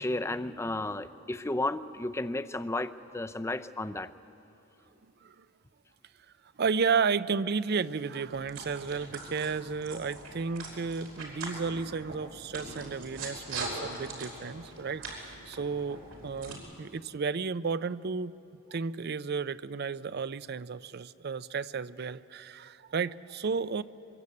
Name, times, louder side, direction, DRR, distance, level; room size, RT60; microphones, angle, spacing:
voice 1, 0.0-4.1, left 2 dB, 15° left, 10 dB, 0.5 m, -33 dB
voice 2, 6.6-18.3 18.7-23.8, right 5 dB, 50° right, 16 dB, 0.5 m, -33 dB
sound 1, 8.3-16.5, right 2 dB, 85° right, 5.2 m, -42 dB
22.5 x 22.0 x 8.4 m, 2.8 s
head